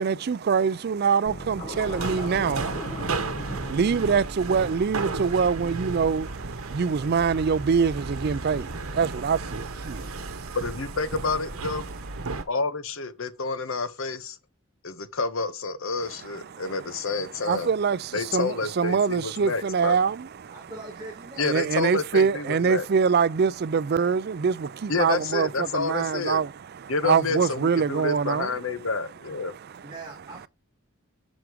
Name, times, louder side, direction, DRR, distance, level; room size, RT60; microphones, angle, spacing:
voice 1, 0.0-10.6 12.2-12.4 16.3-20.7 21.4-28.5 29.5-29.9, right 6 dB, 45° right, 0.4 m, -25 dB
Scratching (performance technique), 1.2-3.8, equal, 30° left, 1.6 m, -36 dB
sound 1, 1.7-12.4, right 3 dB, 70° right, 1.0 m, -34 dB
voice 2, 10.5-11.8 12.5-14.4 14.8-17.7 18.1-20.0 21.4-22.8 24.9-26.4 26.9-29.5, left 4 dB, 60° left, 0.9 m, -29 dB
voice 3, 20.5-21.5 29.8-30.5, right 2 dB, 20° right, 2.4 m, -41 dB
6.3 x 4.7 x 4.7 m
head